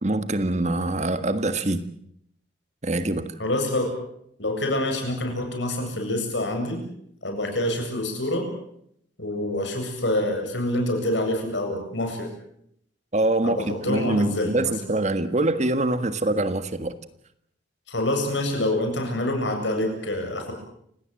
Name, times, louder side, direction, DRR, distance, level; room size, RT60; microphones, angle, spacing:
voice 1, 0.0-1.9 2.8-3.3 13.1-13.6 13.9-17.0, right 2 dB, 40° right, 1.6 m, -24 dB
voice 2, 3.4-3.9 4.4-6.8 7.2-8.5 9.2-12.3 13.4-14.7 17.9-20.5, left 1 dB, 75° left, 8.0 m, -26 dB
29.5 x 18.0 x 7.8 m
head